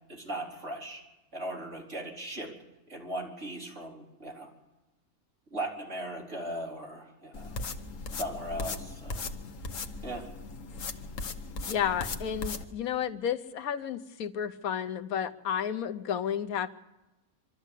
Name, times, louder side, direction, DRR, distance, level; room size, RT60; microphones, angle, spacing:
voice 1, 0.1-1.0 1.3-2.5 2.9-4.5 5.5-7.6 8.1-9.2 10.0-10.3, right 1 dB, 55° right, -1 dB, 4.0 m, -38 dB
sound 1, 7.3-12.6, left 3 dB, 65° left, 1.4 m, -38 dB
voice 2, 11.7-16.7, left 8 dB, 90° left, 9 dB, 1.3 m, -32 dB
24.5 x 13.0 x 8.3 m, 1.1 s
omnidirectional pair, 1.5 m